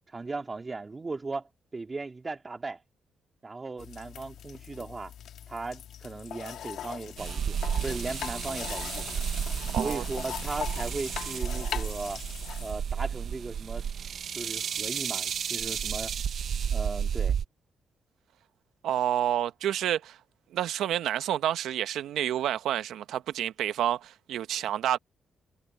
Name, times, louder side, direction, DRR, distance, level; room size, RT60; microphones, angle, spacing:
voice 1, 0.1-2.8 3.4-5.1 5.5-9.1 9.8-12.2 12.6-13.9 14.3-16.1 16.7-17.4, right 3 dB, 25° right, 2.6 m, -37 dB
sound 1, 3.8-12.7, left 10 dB, 80° left, 1.6 m, -40 dB
Cicada summer, 7.2-17.4, right 8 dB, 60° right, 0.9 m, -32 dB
voice 2, 9.7-10.0 18.8-20.2 20.5-25.0, right 11 dB, 90° right, 1.0 m, -29 dB
cardioid pair, 110°, 0 cm